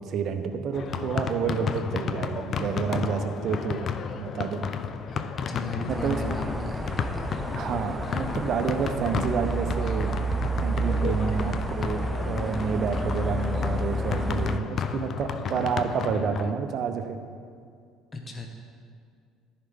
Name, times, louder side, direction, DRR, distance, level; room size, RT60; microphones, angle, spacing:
voice 1, 0.0-3.9 4.2-4.7 5.9-6.2 7.6-10.2 10.6-17.2, right 6 dB, 50° right, 8 dB, 0.7 m, -29 dB
sound 1, 0.7-16.5, left 6 dB, 45° left, 0.4 m, -33 dB
voice 2, 5.5-7.3 18.1-18.5, left 2 dB, 25° left, 2 dB, 1.0 m, -34 dB
sound 2, 5.9-14.6, right 1 dB, 10° right, 0.4 m, -30 dB
14.0 x 4.8 x 3.7 m, 2.2 s
figure-of-eight pair, 60°, 0 cm